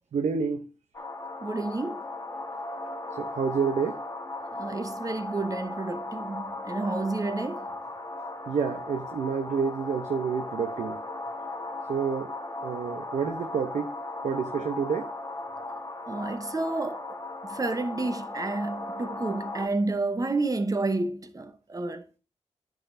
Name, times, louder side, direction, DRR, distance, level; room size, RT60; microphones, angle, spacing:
voice 1, 0.1-0.7 3.2-4.0 8.5-11.0 11.9-12.3 12.6-14.0 14.2-15.1, right 6 dB, 85° right, 0.7 m, -28 dB
sound 1, 0.9-19.7, left 2 dB, 30° left, 1.4 m, -37 dB
voice 2, 1.4-2.0 4.6-7.7 16.1-17.2 17.4-22.0, right 2 dB, 30° right, 0.8 m, -30 dB
9.9 x 6.3 x 2.6 m
cardioid pair, 60°, 12 cm